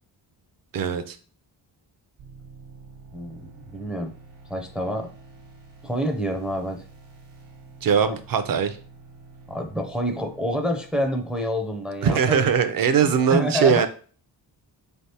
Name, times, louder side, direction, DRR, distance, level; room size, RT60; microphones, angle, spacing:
voice 1, 0.7-1.2 7.8-8.8 12.0-13.9, right 7 dB, 50° right, 10 dB, 0.5 m, -21 dB
sound 1, 2.2-12.0, right 4 dB, 65° right, 1.1 m, -48 dB
voice 2, 3.1-4.1 4.5-5.1 5.8-6.8 8.1-8.2 9.5-12.5 12.9-13.9, equal, ahead, 4 dB, 0.4 m, -28 dB
3.9 x 3.4 x 2.8 m, 0.40 s
wide cardioid pair, 130°, 44 cm